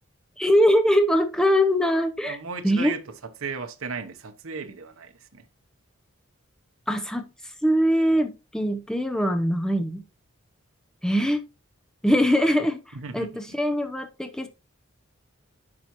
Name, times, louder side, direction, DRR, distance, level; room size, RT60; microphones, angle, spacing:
voice 1, 0.4-2.4 2.6-3.0 6.9-7.3 7.6-10.0 11.0-11.5 12.0-14.5, equal, 5° left, 0.6 m, -22 dB
voice 2, 2.3-3.0 3.4-5.4 12.9-13.3, right 5 dB, 75° right, 0.8 m, -35 dB
9.9 x 5.7 x 2.9 m
head